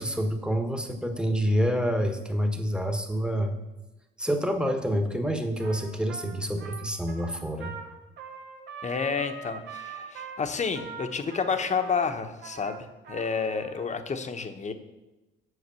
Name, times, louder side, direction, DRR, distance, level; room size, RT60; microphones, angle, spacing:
voice 1, 0.0-3.5 4.2-7.7, equal, 5° right, 6 dB, 1.3 m, -27 dB
Trumpet, 5.6-13.9, right 6 dB, 65° right, 1.6 m, -43 dB
voice 2, 8.8-14.7, left 5 dB, 35° left, 7 dB, 1.1 m, -30 dB
8.1 x 6.4 x 6.9 m, 1.0 s
cardioid pair, 90°, 20 cm